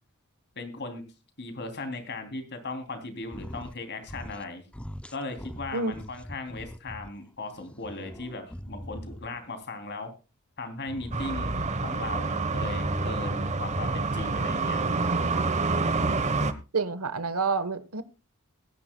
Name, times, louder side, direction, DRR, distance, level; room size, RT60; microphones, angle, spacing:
voice 1, 0.5-1.0 1.4-4.6 5.1-10.1 10.6-11.5 11.8-14.8 15.3-15.5, left 2 dB, 50° left, 3.1 m, -37 dB
sound 1, 3.2-4.5 4.7-7.1 7.5-9.5 10.8-12.2 13.7-14.7, equal, 5° left, 0.6 m, -42 dB
sound 2, 11.1-16.5, right 3 dB, 35° right, 1.1 m, -27 dB
voice 2, 16.7-18.0, right 4 dB, 80° right, 1.3 m, -28 dB
21.0 x 10.5 x 2.3 m
head